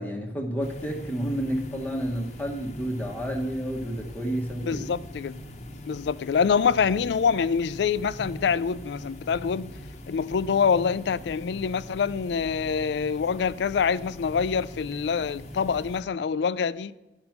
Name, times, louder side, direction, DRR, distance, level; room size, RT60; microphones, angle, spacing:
voice 1, 0.0-4.9, equal, 10° left, 1.0 m, -30 dB
sound 1, 0.6-16.0, left 1 dB, 40° left, 0.9 m, -42 dB
voice 2, 4.6-5.4 5.8-9.7 10.1-16.9, left 6 dB, 65° left, 0.3 m, -25 dB
12.0 x 5.3 x 5.8 m
head